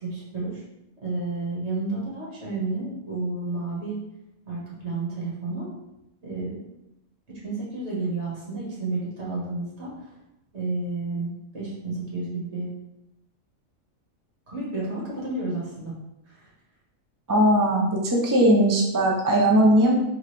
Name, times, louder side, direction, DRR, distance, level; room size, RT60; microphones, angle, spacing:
voice 1, 0.0-0.6 1.0-4.0 4.5-5.7 6.2-6.6 7.3-10.1 10.5-12.7 14.5-16.0 16.3-16.5, right 3 dB, 55° right, -7 dB, 1.9 m, -31 dB
voice 2, 17.3-19.9, right 1 dB, 30° right, -2 dB, 0.3 m, -19 dB
3.8 x 3.5 x 3.3 m, 0.87 s
omnidirectional pair, 1.4 m